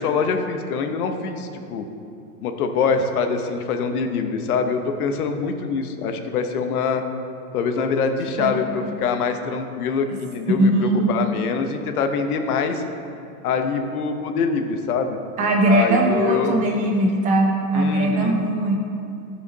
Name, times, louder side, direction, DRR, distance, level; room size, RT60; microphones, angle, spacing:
voice 1, 0.0-1.9 2.4-7.0 7.5-12.8 13.4-15.2 15.7-16.6 17.7-18.3, left 5 dB, 85° left, 7 dB, 1.0 m, -24 dB
voice 2, 10.6-11.1 15.4-18.8, right 1 dB, 20° right, 1 dB, 0.3 m, -20 dB
12.0 x 5.0 x 4.0 m, 2.6 s
supercardioid pair, 140°, 44 cm